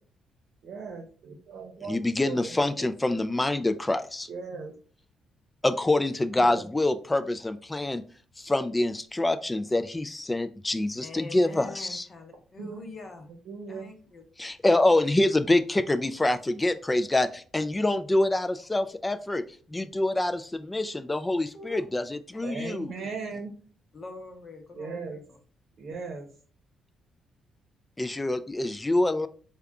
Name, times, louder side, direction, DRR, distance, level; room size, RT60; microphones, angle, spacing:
voice 1, 0.6-2.9 4.3-4.7 6.4-6.6 12.6-12.8 13.4-13.9 22.4-23.5 24.7-25.2 25.8-26.3, right 4 dB, 65° right, 2 dB, 0.8 m, -38 dB
voice 2, 1.9-4.3 5.6-8.0 8.4-12.1 14.4-19.4 19.7-22.9 28.0-29.3, left 2 dB, 15° left, 11 dB, 0.3 m, -26 dB
voice 3, 11.0-13.3 13.7-14.2 21.5-21.8 22.3-23.1 23.9-25.4, left 2 dB, 40° left, 4 dB, 0.9 m, -44 dB
3.5 x 2.3 x 3.7 m, 0.42 s
cardioid pair, 90°, 0 cm